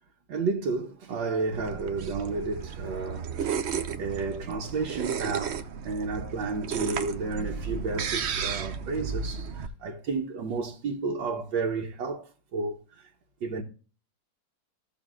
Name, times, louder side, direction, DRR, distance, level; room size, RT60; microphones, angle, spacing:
voice 1, 0.3-3.7 3.9-13.1 13.4-13.6, right 4 dB, 75° right, 1.8 m, -32 dB
sound 1, 1.5-9.7, right 6 dB, 60° right, 0.7 m, -33 dB
16.0 x 6.5 x 2.4 m
omnidirectional pair, 2.0 m